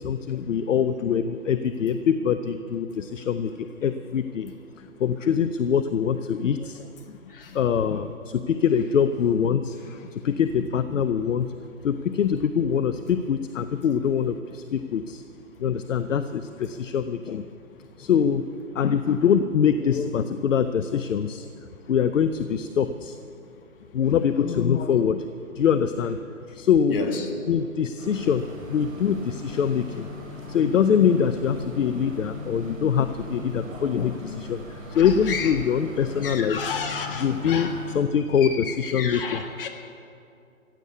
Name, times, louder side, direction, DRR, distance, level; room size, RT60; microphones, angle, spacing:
voice 1, 0.0-6.9 7.5-11.5 11.8-15.2 15.6-17.4 18.0-18.5 18.7-21.5 21.9-23.2 23.9-25.2 25.6-27.0 27.5-30.1 30.5-34.6 34.9-36.6 37.2-39.4, left 7 dB, 60° left, 11 dB, 0.7 m, -24 dB
sound 1, 28.0-38.0, left 2 dB, 65° right, 3.6 m, -39 dB
voice 2, 36.2-37.7 38.4-38.5 38.8-39.7, left 6 dB, 40° left, 3 dB, 1.8 m, -31 dB
15.0 x 8.2 x 8.2 m, 2.6 s
hypercardioid pair, 150°, 42 cm